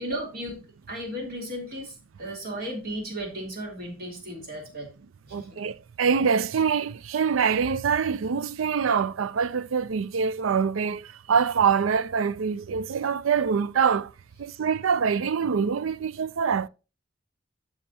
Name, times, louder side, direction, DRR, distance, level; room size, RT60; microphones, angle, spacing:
voice 1, 0.0-4.9 5.2-5.6, equal, 50° right, 3.2 m, -35 dB
voice 2, 5.3-14.1 14.4-16.7, right 6 dB, 90° right, 0.4 m, -25 dB
12.5 x 5.7 x 2.8 m
head